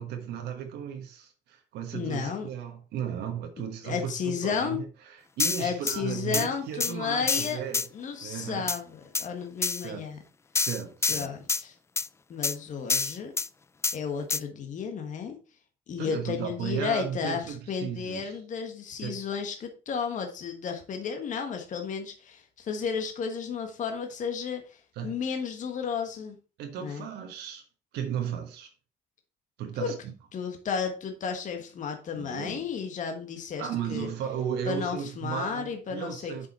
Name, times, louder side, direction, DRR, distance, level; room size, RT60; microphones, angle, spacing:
voice 1, 0.0-7.9 8.2-8.7 9.8-10.1 10.6-11.3 16.0-18.3 19.0-19.2 24.9-25.1 26.6-27.7 27.9-28.7 29.6-30.1 32.1-32.7 33.6-36.5, right 8 dB, 80° right, 1.4 m, -35 dB
voice 2, 1.9-2.5 3.6-4.8 5.6-7.6 7.9-10.2 11.1-11.7 12.3-13.3 13.9-15.4 15.9-24.6 25.0-26.4 26.8-27.0 29.8-29.9 30.3-34.1 34.7-36.5, left 6 dB, 50° left, 1.4 m, -33 dB
sound 1, 5.4-6.0 6.3-6.5 6.8-6.9 7.3-7.9 8.7-8.8 9.1-9.3 9.6-9.9 10.6-11.6 12.0-12.1 12.4-12.6 12.9-13.5 13.8-14.0 14.3-14.4, left 4 dB, 15° left, 0.3 m, -27 dB
7.0 x 5.4 x 4.2 m
cardioid pair, 110°, 17 cm